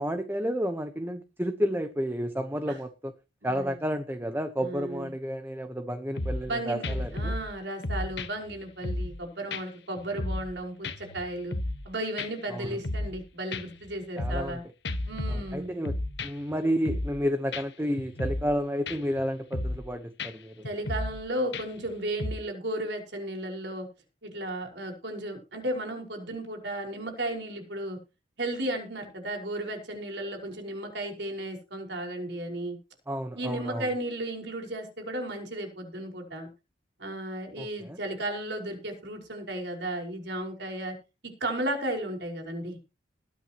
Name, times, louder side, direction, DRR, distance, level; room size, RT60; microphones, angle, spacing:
voice 1, 0.0-3.1 3.4-7.3 12.5-12.8 14.2-14.6 15.3-16.0 16.2-20.6 33.1-33.9 37.6-38.0, equal, 10° right, 7 dB, 1.1 m, -31 dB
voice 2, 3.4-3.8 4.6-5.1 6.5-11.6 11.9-14.6 15.1-15.8 20.6-23.9 24.2-28.0 28.4-32.8 33.4-36.5 37.0-41.0 41.2-42.8, right 1 dB, 60° right, 3 dB, 5.3 m, -34 dB
sound 1, 6.2-6.5 6.8-7.5 7.8-9.2 9.5-9.6 10.0-10.6 10.8-11.9 12.2-12.3 12.6-13.2 13.5-14.5 14.8-16.5 16.8-17.2 17.5-17.6 18.0-18.6 18.9-19.2 19.5-19.9 20.2-20.3 20.6-21.2 21.5-21.9 22.2-22.3, left 1 dB, 65° left, 1.4 m, -33 dB
20.5 x 9.3 x 3.1 m, 0.30 s
head